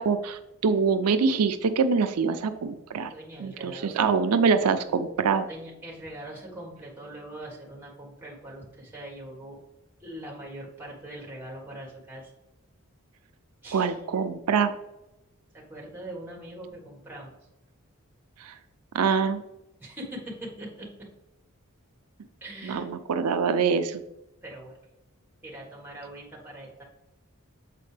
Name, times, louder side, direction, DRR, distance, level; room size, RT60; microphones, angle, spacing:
voice 1, 0.0-3.1 3.4-5.5 13.7-14.7 18.4-18.5 18.9-19.4 22.6-24.0, right 5 dB, 85° right, 9 dB, 0.4 m, -24 dB
voice 2, 3.1-4.1 5.5-9.6 10.0-12.3 13.6-14.0 15.5-17.3 19.8-21.1 22.4-22.9 24.4-24.8 25.4-26.8, right 1 dB, 10° right, -2 dB, 1.5 m, -42 dB
7.5 x 4.3 x 3.3 m, 0.91 s
head